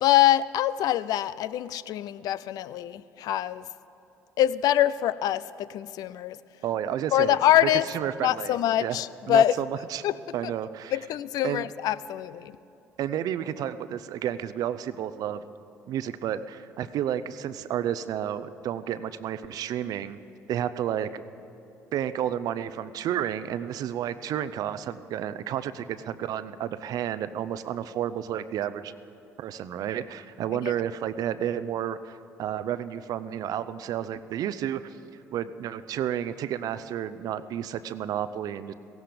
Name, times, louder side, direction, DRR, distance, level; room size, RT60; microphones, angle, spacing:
voice 1, 0.0-3.7 4.4-6.4 7.1-7.9 8.2-9.5 10.0-10.2 10.4-10.5 10.9-12.6 30.5-30.7, left 13 dB, 60° left, 17 dB, 0.4 m, -24 dB
voice 2, 6.6-7.4 7.9-9.0 9.3-9.7 9.9-10.0 10.3-10.9 11.4-11.7 13.0-15.4 15.9-20.2 20.5-21.2 21.9-28.9 29.4-34.9 35.3-38.7, right 10 dB, 60° right, 14 dB, 0.6 m, -31 dB
17.0 x 16.0 x 5.2 m, 2.8 s
hypercardioid pair, 55°, 7 cm